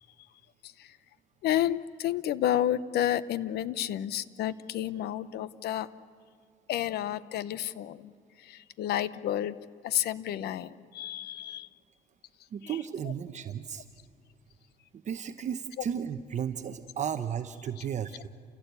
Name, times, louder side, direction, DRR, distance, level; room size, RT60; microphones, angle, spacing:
voice 1, 1.4-5.9 6.7-8.1 8.4-9.6 9.8-11.7 12.6-12.8, left 11 dB, 75° left, 17 dB, 0.8 m, -31 dB
voice 2, 12.5-13.9 15.0-18.3, right 8 dB, 45° right, 9 dB, 0.9 m, -34 dB
29.0 x 16.5 x 8.2 m, 2.4 s
cardioid pair, 110°, 17 cm